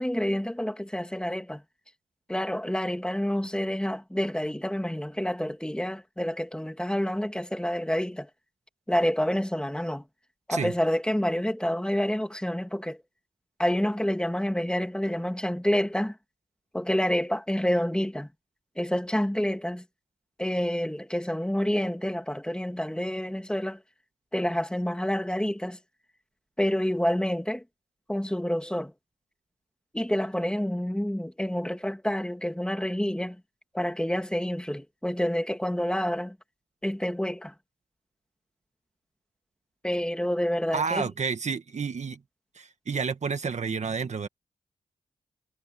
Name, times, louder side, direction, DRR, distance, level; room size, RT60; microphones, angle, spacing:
voice 1, 0.0-1.6 2.3-8.3 8.9-10.0 10.5-13.0 13.6-16.1 16.7-18.3 18.8-19.8 20.4-23.8 24.3-25.8 26.6-27.6 28.1-28.9 29.9-33.4 33.7-36.4 36.8-37.5 39.8-41.0, equal, 5° left, 2.6 m, -28 dB
voice 2, 40.7-42.2 42.5-44.3, right 5 dB, 60° right, 1.6 m, -30 dB
cardioid pair, 70°, 14 cm